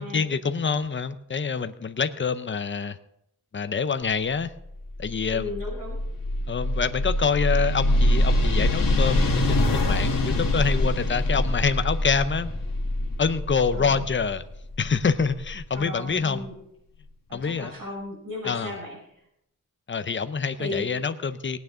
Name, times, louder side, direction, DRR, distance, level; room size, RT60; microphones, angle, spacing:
voice 1, 0.0-3.0 3.5-4.5 5.0-5.5 6.5-12.5 13.2-14.4 14.8-16.5 17.3-17.7 18.4-18.7 19.9-21.6, left 5 dB, 35° left, 10 dB, 0.7 m, -26 dB
sound 1, 4.8-15.5, left 1 dB, 80° left, 1.8 m, -24 dB
voice 2, 5.3-6.0 13.7-14.0 15.7-16.5 17.3-19.0 20.6-20.9, left 1 dB, 80° right, -1 dB, 5.7 m, -35 dB
18.5 x 9.3 x 3.8 m, 0.76 s
wide cardioid pair, 110°, 33 cm